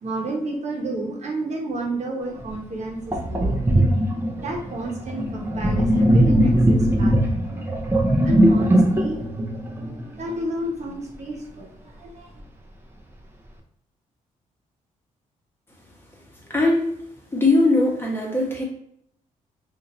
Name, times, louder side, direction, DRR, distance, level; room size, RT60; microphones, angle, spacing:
voice 1, 0.0-3.7 4.3-7.6 8.2-9.2 10.2-12.3, right 2 dB, 55° right, 0 dB, 1.1 m, -31 dB
Sink (filling or washing), 2.4-2.5 3.1-10.4, right 1 dB, 15° right, 0.7 m, -20 dB
voice 2, 16.5-16.9 17.3-18.6, left 2 dB, 15° left, -2 dB, 1.3 m, -20 dB
2.7 x 2.6 x 4.2 m, 0.69 s
cardioid pair, 90°, 14 cm